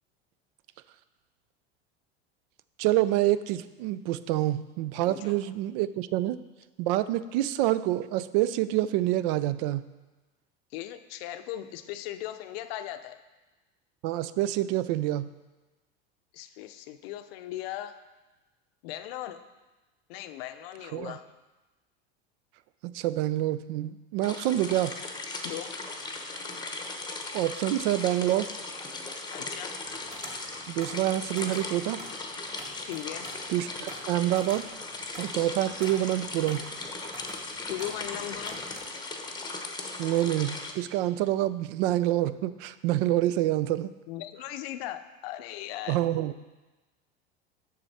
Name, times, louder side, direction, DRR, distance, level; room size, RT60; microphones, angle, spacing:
voice 1, 2.8-6.4 6.8-9.8 14.0-15.3 20.9-21.2 22.8-24.9 27.3-28.5 30.7-32.0 33.5-34.7 35.2-36.7 40.0-43.9 45.9-46.3, right 14 dB, 65° right, 15 dB, 0.4 m, -27 dB
voice 2, 5.1-5.4 10.7-13.2 16.3-18.0 18.8-19.4 20.1-21.2 25.4-25.8 27.3-27.4 29.3-29.8 32.8-33.3 37.7-38.6 44.1-46.0, left 13 dB, 70° left, 10 dB, 0.6 m, -38 dB
sound 1, 24.2-40.7, left 3 dB, 15° left, 0.8 m, -38 dB
sound 2, 29.8-38.8, right 1 dB, 20° right, 2.3 m, -48 dB
6.7 x 6.5 x 4.2 m, 1.2 s
supercardioid pair, 105°, 31 cm